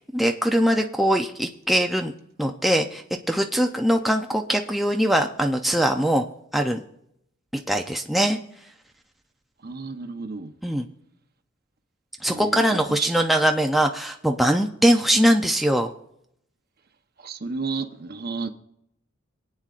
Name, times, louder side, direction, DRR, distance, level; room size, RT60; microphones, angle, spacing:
voice 1, 0.0-2.1 2.4-6.2 6.5-6.8 7.5-8.4 10.6-10.9 12.2-15.9, equal, ahead, 0.5 m, -22 dB
voice 2, 9.6-10.5 12.3-13.2 17.2-18.5, right 4 dB, 50° right, 0.9 m, -32 dB
25.5 x 8.9 x 2.5 m
head